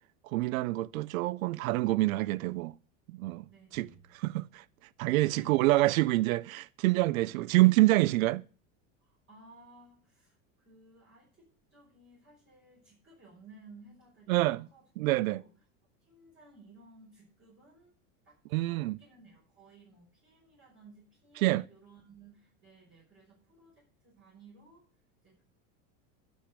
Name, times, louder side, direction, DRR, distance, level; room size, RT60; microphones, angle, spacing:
voice 1, 0.2-2.8 3.1-3.5 3.7-3.9 4.1-4.6 5.0-8.4 14.3-14.7 15.0-15.4 18.5-19.0 21.4-21.6, right 18 dB, 90° right, 0.5 m, -26 dB
voice 2, 3.5-4.1 5.2-5.6 7.2-7.4 9.0-15.5 16.0-17.9 18.2-25.4, right 3 dB, 30° right, 5.7 m, -57 dB
Bowed string instrument, 3.7-6.1, right 10 dB, 60° right, 7.3 m, -67 dB
11.5 x 6.2 x 8.1 m
supercardioid pair, 125°, 40 cm